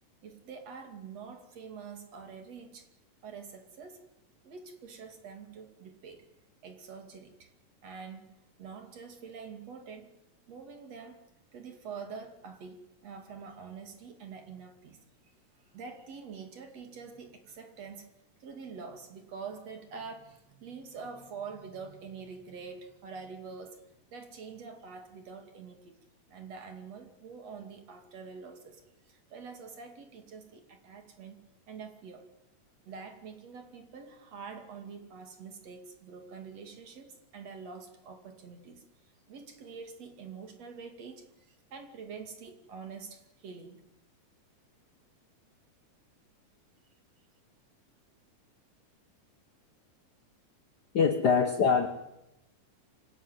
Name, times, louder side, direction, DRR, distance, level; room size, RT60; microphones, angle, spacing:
voice 1, 0.2-2.9 3.2-4.0 4.4-6.3 6.6-7.5 7.8-10.1 10.5-11.2 11.5-15.0 15.7-18.1 18.4-23.8 24.1-26.0 26.3-28.8 29.1-31.4 31.7-32.2 32.9-38.8 39.3-43.8, right 5 dB, 55° right, 6 dB, 3.6 m, -46 dB
voice 2, 50.9-51.9, left 6 dB, 55° left, 6 dB, 1.1 m, -24 dB
25.5 x 17.0 x 9.4 m, 0.91 s
omnidirectional pair, 3.6 m